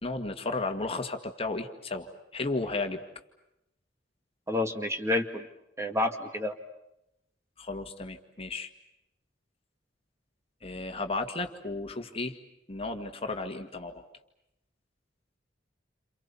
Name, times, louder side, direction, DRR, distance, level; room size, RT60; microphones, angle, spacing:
voice 1, 0.0-3.0 7.6-8.7 10.6-12.4 12.7-14.1, left 3 dB, 30° left, 5 dB, 2.0 m, -34 dB
voice 2, 4.5-5.5 5.8-6.6, left 2 dB, 15° right, 5 dB, 2.1 m, -29 dB
29.5 x 28.5 x 7.0 m, 0.84 s
head